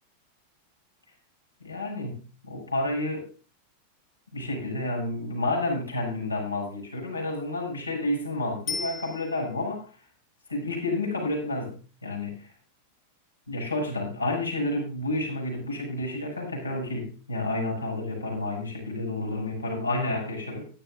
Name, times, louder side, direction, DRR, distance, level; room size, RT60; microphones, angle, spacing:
voice 1, 1.6-3.3 4.3-9.9 10.5-12.4 13.5-20.7, left 2 dB, 80° left, -1 dB, 7.3 m, -30 dB
Bicycle bell, 8.7-9.8 18.9-19.0, left 5 dB, 30° left, 1.7 m, -36 dB
17.5 x 12.5 x 2.6 m, 0.35 s
figure-of-eight pair, 90°, 0 cm